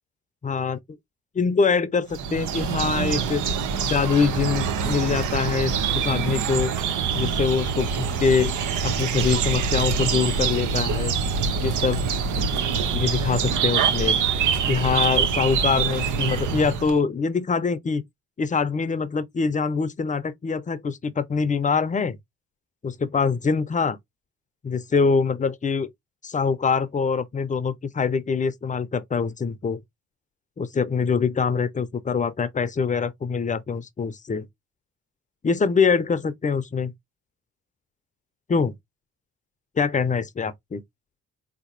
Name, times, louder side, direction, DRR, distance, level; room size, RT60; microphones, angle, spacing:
voice 1, 0.4-0.8 1.3-6.7 7.2-8.6 8.8-11.1 11.6-12.0 12.9-14.2 14.7-18.0 18.4-22.2 22.8-24.0 24.6-25.9 26.2-29.8 30.6-34.5 35.4-36.9 38.5-38.7 39.8-40.8, left 5 dB, 25° left, 0.6 m, -24 dB
sound 1, 2.1-17.0, right 6 dB, 80° right, 0.8 m, -25 dB
4.0 x 2.9 x 2.5 m
cardioid pair, 90°, 30 cm